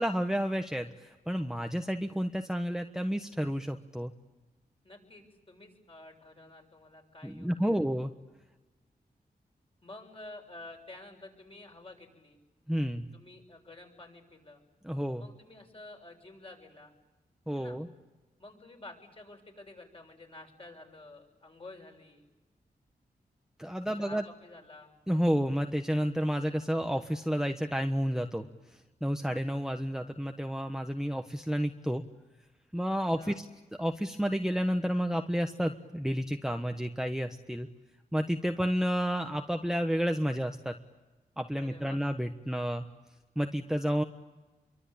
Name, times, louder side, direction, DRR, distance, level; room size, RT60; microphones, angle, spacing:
voice 1, 0.0-4.1 7.2-8.1 12.7-13.1 14.8-15.2 17.5-17.9 23.6-24.2 25.1-28.5 29.0-32.0 32.7-33.4 33.8-37.7 38.1-40.7 41.4-42.8 43.4-44.0, equal, 5° right, 5 dB, 1.3 m, -30 dB
voice 2, 4.8-7.8 9.8-12.4 13.1-14.6 15.2-16.9 17.5-17.8 18.4-22.2 24.0-24.9 33.1-33.4 41.5-42.0, left 2 dB, 35° left, 3 dB, 7.1 m, -50 dB
27.0 x 24.0 x 8.7 m, 1.2 s
wide cardioid pair, 80°, 16 cm